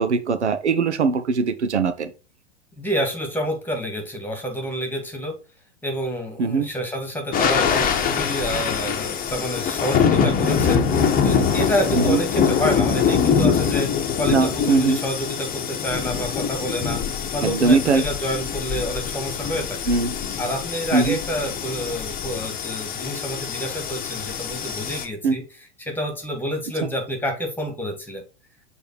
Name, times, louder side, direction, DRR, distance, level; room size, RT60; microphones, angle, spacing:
voice 1, 0.0-2.1 6.4-6.7 12.1-12.2 14.3-15.0 17.4-18.0 19.9-20.2 20.9-21.2 25.2-25.4, right 4 dB, 75° right, 0.8 m, -20 dB
voice 2, 2.8-5.4 5.8-17.0 17.3-19.9 20.4-28.2, equal, 5° left, 2.1 m, -28 dB
sound 1, 7.3-25.1, left 7 dB, 25° left, 1.0 m, -24 dB
6.6 x 3.6 x 4.4 m
figure-of-eight pair, 90°, 34 cm